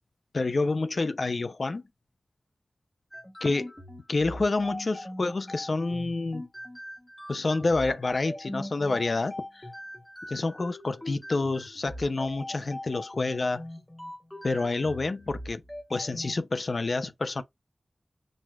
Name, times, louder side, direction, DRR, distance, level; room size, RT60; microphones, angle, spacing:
voice 1, 0.3-1.8 3.4-3.7 4.1-6.4 7.3-9.7 10.3-13.6 14.4-15.6 15.9-17.4, left 3 dB, 60° left, 0.4 m, -28 dB
sound 1, 3.1-16.3, left 1 dB, 10° left, 1.0 m, -41 dB
6.2 x 2.2 x 2.3 m
wide cardioid pair, 70°, 0 cm